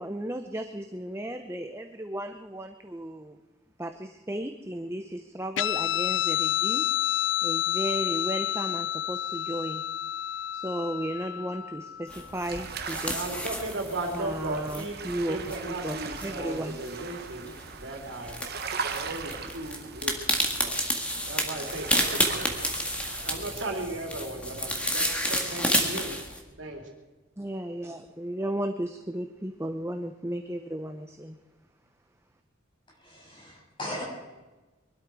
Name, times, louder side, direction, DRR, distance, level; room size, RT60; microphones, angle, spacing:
voice 1, 0.0-3.4 3.8-6.9 7.4-9.8 10.5-13.4 14.1-16.8 27.4-31.4, right 1 dB, 15° right, 6 dB, 0.8 m, -34 dB
Guitar, 5.6-12.5, left 12 dB, 65° left, 0.4 m, -29 dB
sound 1, 12.1-26.4, left 1 dB, 5° left, 1.9 m, -31 dB
sound 2, 12.4-23.8, right 5 dB, 50° right, 1.2 m, -40 dB
voice 2, 13.1-15.0 15.3-18.4 18.9-20.8 21.3-22.5 23.2-26.2 26.6-26.9, right 2 dB, 70° right, 1 dB, 3.3 m, -36 dB
voice 3, 33.0-34.1, left 1 dB, 25° left, -3 dB, 6.7 m, -38 dB
23.0 x 12.5 x 4.8 m, 1.2 s
head